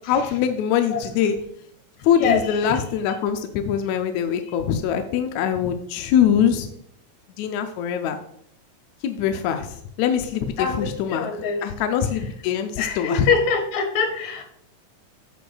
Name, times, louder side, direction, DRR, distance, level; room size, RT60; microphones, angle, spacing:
voice 1, 0.1-1.4 2.0-6.7 7.4-8.2 9.0-11.3 11.6-13.3, left 8 dB, 80° left, 6 dB, 1.7 m, -23 dB
voice 2, 2.1-2.7 10.6-11.6 12.8-14.4, left 5 dB, 65° left, 3 dB, 2.3 m, -24 dB
9.1 x 6.9 x 2.3 m, 0.71 s
omnidirectional pair, 3.6 m